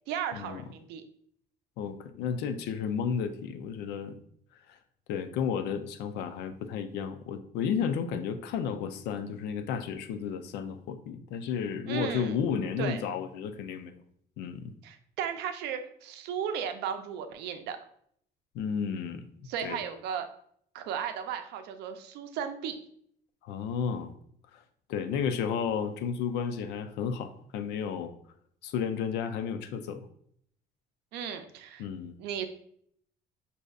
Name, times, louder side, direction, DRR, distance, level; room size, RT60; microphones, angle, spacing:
voice 1, 0.1-1.0 11.9-12.3 12.8-13.0 14.8-17.8 19.5-20.3 20.7-22.7 31.1-31.9 32.2-32.5, right 8 dB, 90° right, 8 dB, 0.5 m, -35 dB
voice 2, 1.8-4.2 5.1-14.0 14.4-14.7 18.5-19.2 19.6-19.8 23.4-24.1 24.5-24.6 24.9-28.1 28.6-30.0 31.8-32.2, left 7 dB, 85° left, 9 dB, 0.5 m, -32 dB
6.4 x 2.7 x 2.3 m, 0.66 s
cardioid pair, 110°, 17 cm